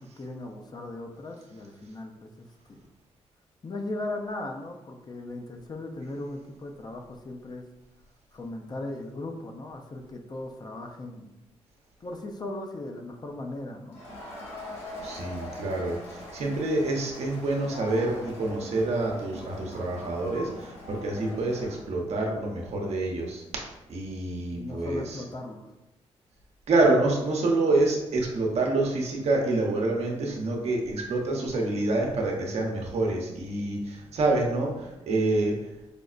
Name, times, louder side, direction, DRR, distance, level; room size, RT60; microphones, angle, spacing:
voice 1, 0.0-2.9 3.6-7.6 8.3-11.3 12.0-14.0 24.5-25.7, left 2 dB, 35° left, 3 dB, 0.5 m, -38 dB
Crowd, 13.9-21.9, left 1 dB, 65° left, 1.2 m, -42 dB
voice 2, 15.0-23.4 23.9-25.2 26.7-35.5, right 2 dB, 70° right, 0 dB, 0.7 m, -27 dB
5.0 x 2.1 x 2.4 m, 0.96 s
cardioid pair, 70°, 11 cm